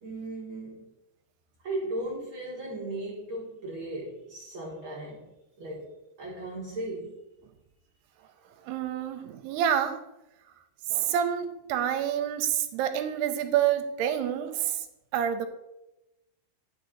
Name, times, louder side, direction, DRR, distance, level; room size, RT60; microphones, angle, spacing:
voice 1, 0.0-0.9 1.6-5.3 5.6-5.9 6.2-7.2, right 1 dB, 55° right, -4 dB, 1.4 m, -36 dB
voice 2, 8.7-10.0 10.9-14.7 15.1-15.5, right 9 dB, 85° right, 8 dB, 2.6 m, -27 dB
9.4 x 6.3 x 3.8 m, 0.93 s
omnidirectional pair, 4.7 m